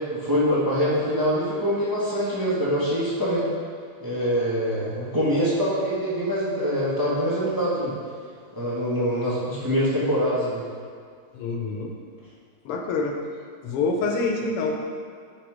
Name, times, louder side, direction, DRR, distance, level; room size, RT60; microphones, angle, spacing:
voice 1, 0.0-3.5 4.0-7.9 8.5-10.6, equal, 10° right, -8 dB, 1.5 m, -24 dB
voice 2, 11.3-11.9 12.7-13.2 13.6-14.8, left 3 dB, 85° left, 2 dB, 1.8 m, -26 dB
9.1 x 4.2 x 5.0 m, 2.1 s
omnidirectional pair, 2.4 m